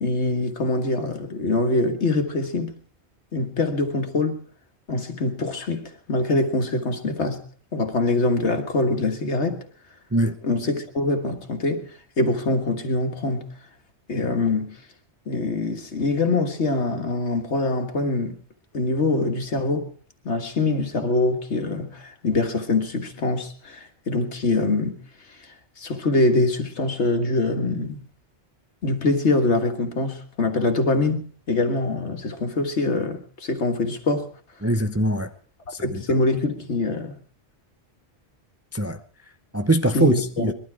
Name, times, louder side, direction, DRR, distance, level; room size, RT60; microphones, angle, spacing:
voice 1, 0.0-2.8 3.3-4.4 4.9-7.4 7.7-9.7 10.4-11.9 12.2-13.5 14.1-14.8 15.3-18.3 18.7-19.9 20.3-25.0 25.8-28.0 28.8-34.3 35.8-37.1 39.9-40.5, left 2 dB, 90° left, 1.9 m, -24 dB
voice 2, 34.6-35.3 35.7-36.0 38.7-39.0 39.5-40.5, right 1 dB, 15° right, 0.6 m, -22 dB
21.0 x 12.5 x 4.7 m
omnidirectional pair, 1.1 m